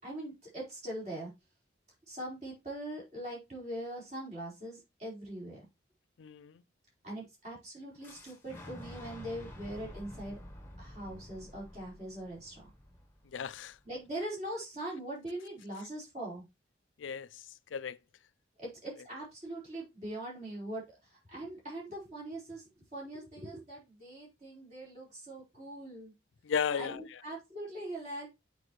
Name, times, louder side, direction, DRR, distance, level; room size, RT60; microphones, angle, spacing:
voice 1, 0.0-1.3 2.1-5.6 7.0-10.4 10.8-12.6 13.8-16.4 18.6-26.1 26.8-28.3, right 1 dB, 35° right, 4.5 m, -42 dB
voice 2, 6.2-6.6 13.3-13.8 17.0-17.4 17.7-18.0 26.4-27.2, left 6 dB, 80° left, 0.4 m, -35 dB
Boom, 8.0-13.9, left 1 dB, 10° left, 1.1 m, -49 dB
7.9 x 5.0 x 3.1 m
head